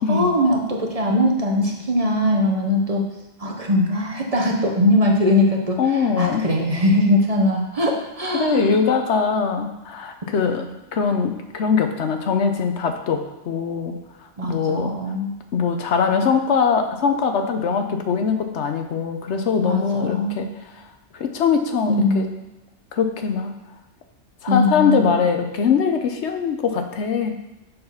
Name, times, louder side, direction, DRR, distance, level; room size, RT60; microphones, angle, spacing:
voice 1, 0.0-3.0 3.4-8.7 10.6-10.7 14.4-15.3 19.6-20.5 21.9-22.3 24.5-25.1, left 1 dB, 35° right, 1 dB, 0.8 m, -21 dB
voice 2, 5.8-6.5 8.4-13.2 13.5-13.9 14.4-14.9 15.5-20.5 21.1-22.3 22.9-23.5 24.4-27.3, left 6 dB, 65° left, 6 dB, 1.0 m, -22 dB
6.7 x 4.1 x 5.6 m, 1.0 s
omnidirectional pair, 1.3 m